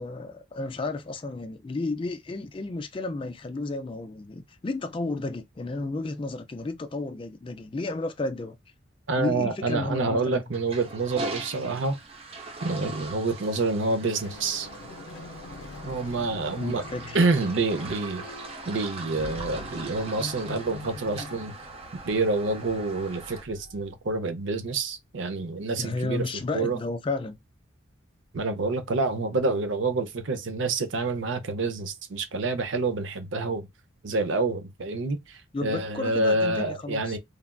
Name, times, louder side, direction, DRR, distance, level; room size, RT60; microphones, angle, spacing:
voice 1, 0.0-8.6 9.2-10.4 16.6-17.2 25.8-27.4 35.5-37.2, left 2 dB, 25° left, 0.3 m, -32 dB
voice 2, 9.1-12.0 12.6-14.7 15.8-16.8 17.1-18.2 18.7-21.5 22.0-26.2 26.5-26.8 28.3-33.7 34.0-37.2, right 3 dB, 65° right, 0.6 m, -27 dB
Toilet flush, 10.5-23.4, right 2 dB, 30° right, 0.6 m, -41 dB
sound 1, 14.1-24.2, left 3 dB, 80° left, 0.5 m, -44 dB
3.2 x 2.4 x 2.2 m
head